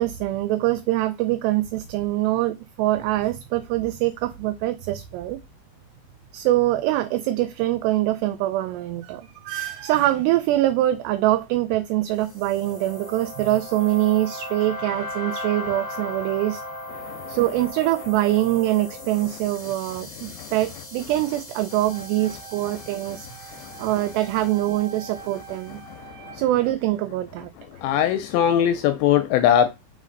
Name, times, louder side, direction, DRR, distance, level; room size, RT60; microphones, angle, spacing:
voice 1, 0.0-5.4 6.3-16.6 17.3-23.5 23.8-25.8 26.3-27.5, right 15 dB, 85° right, 2.5 m, -24 dB
sound 1, 12.2-25.6, left 1 dB, 50° left, 1.4 m, -38 dB
sound 2, 21.7-26.7, right 8 dB, 55° right, 1.8 m, -44 dB
voice 2, 27.8-29.7, left 10 dB, 80° left, 2.7 m, -20 dB
6.3 x 4.1 x 3.8 m
omnidirectional pair, 5.2 m